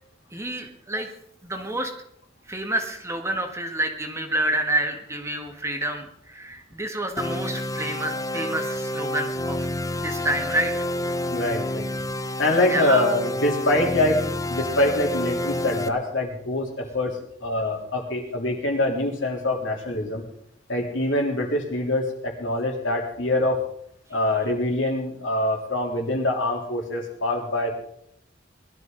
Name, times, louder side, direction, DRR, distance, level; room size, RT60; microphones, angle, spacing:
voice 1, 0.3-1.1 1.4-1.9 2.5-9.6 10.0-10.7 12.7-13.0, right 1 dB, 15° right, 4 dB, 1.6 m, -28 dB
sound 1, 7.2-15.9, left 1 dB, 20° left, 0.7 m, -28 dB
voice 2, 11.3-11.9 12.4-20.2 20.7-23.6 24.1-27.7, left 1 dB, 85° left, -1 dB, 3.5 m, -24 dB
20.5 x 12.5 x 4.0 m, 0.71 s
head